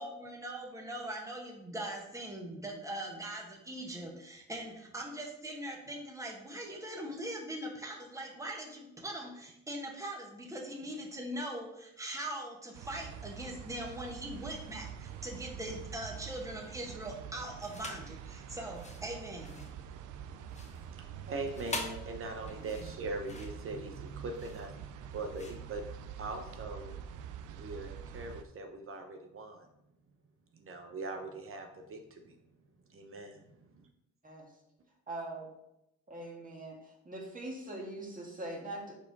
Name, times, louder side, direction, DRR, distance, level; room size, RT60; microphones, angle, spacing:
voice 1, 0.0-19.6, right 1 dB, 10° right, 0 dB, 1.5 m, -41 dB
sound 1, 12.7-28.4, right 8 dB, 90° right, 0.5 m, -46 dB
sound 2, 17.6-18.1 18.6-26.5, left 2 dB, 25° left, 1.1 m, -45 dB
voice 2, 20.1-25.8 26.2-26.9 27.4-29.7 30.5-32.4 32.9-33.3 33.8-33.9, right 2 dB, 45° right, 4 dB, 0.8 m, -42 dB
voice 3, 35.1-35.5 36.1-39.0, right 1 dB, 25° right, -1 dB, 1.9 m, -42 dB
5.1 x 4.3 x 5.3 m, 0.84 s
cardioid pair, 90°, 30 cm